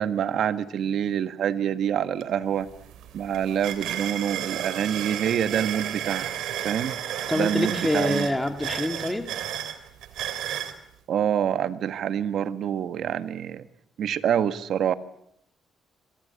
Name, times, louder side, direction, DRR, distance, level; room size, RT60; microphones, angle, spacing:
voice 1, 0.0-2.7 3.1-6.3 6.6-6.9 7.3-8.3 11.1-13.7 14.0-14.9, right 9 dB, 70° right, 11 dB, 1.6 m, -26 dB
sound 1, 2.2-2.3 2.6-10.8, right 10 dB, 85° right, 3.1 m, -32 dB
voice 2, 7.3-9.3, left 1 dB, 10° left, 6 dB, 2.4 m, -26 dB
27.0 x 24.5 x 8.5 m, 0.75 s
cardioid pair, 90°, 0 cm